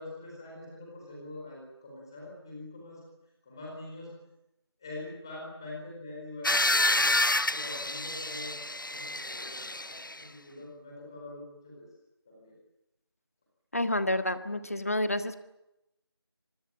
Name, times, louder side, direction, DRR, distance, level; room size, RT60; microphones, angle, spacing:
voice 1, 0.0-3.0 3.4-4.1 4.8-9.7 10.1-11.9 12.3-12.5, left 2 dB, 10° left, -3 dB, 4.5 m, -44 dB
sound 1, 6.4-10.2, left 2 dB, 50° left, 0.8 m, -28 dB
voice 2, 13.7-15.4, left 1 dB, 35° left, 11 dB, 1.6 m, -29 dB
26.0 x 21.0 x 8.9 m, 0.88 s
figure-of-eight pair, 175°, 14 cm